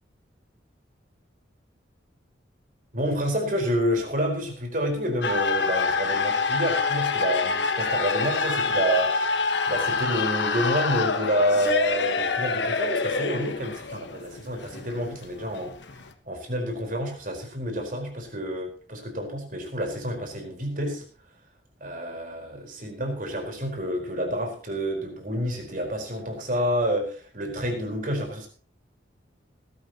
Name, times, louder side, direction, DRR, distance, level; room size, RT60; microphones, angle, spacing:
voice 1, 2.9-9.4 9.7-15.7 16.3-21.0 21.8-28.5, equal, 45° right, 3 dB, 4.5 m, -28 dB
sound 1, 5.2-16.1, left 4 dB, 70° left, 1.4 m, -26 dB
19.5 x 12.5 x 3.0 m, 0.40 s
head